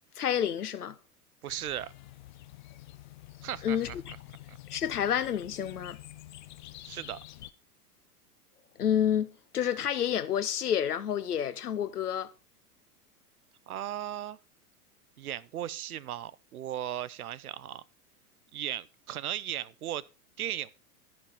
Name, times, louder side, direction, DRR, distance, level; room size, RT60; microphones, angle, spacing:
voice 1, 0.2-1.0 3.6-4.1 4.7-6.0 8.8-12.3, left 9 dB, 75° left, 0.9 m, -29 dB
voice 2, 1.4-1.9 3.4-3.8 4.5-4.6 6.8-7.2 13.7-14.4 15.2-17.8 18.5-20.0 20.4-20.7, right 11 dB, 70° right, 0.6 m, -36 dB
sound 1, 1.5-7.5, left 15 dB, 35° left, 0.4 m, -48 dB
11.0 x 6.0 x 4.3 m
figure-of-eight pair, 95°, 46 cm